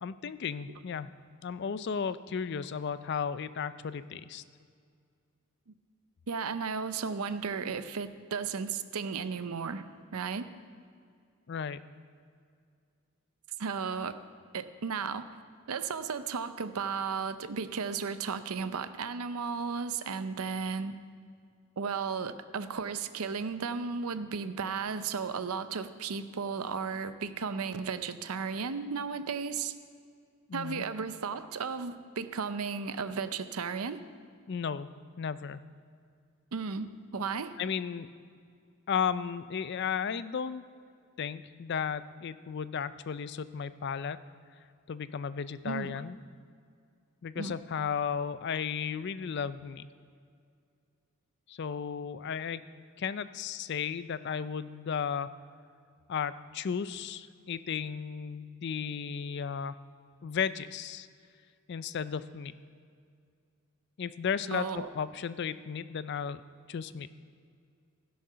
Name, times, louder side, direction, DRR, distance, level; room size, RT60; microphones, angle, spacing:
voice 1, 0.0-1.1 1.4-4.4 11.5-11.8 30.5-30.8 34.5-34.9 35.2-35.6 37.6-38.1 38.9-40.6 41.2-44.2 44.9-46.2 47.2-49.9 51.5-52.6 53.0-55.3 56.1-59.8 60.2-61.1 61.7-62.5 64.0-66.4 66.7-67.1, left 7 dB, 50° left, 15 dB, 0.4 m, -34 dB
voice 2, 6.3-9.8 10.1-10.5 13.6-14.2 14.5-15.3 15.7-21.0 21.8-29.7 30.5-34.0 36.5-37.5 45.6-46.0 47.4-47.5 64.5-64.9, right 5 dB, 80° right, 12 dB, 0.6 m, -34 dB
16.0 x 6.4 x 5.7 m, 2.3 s
head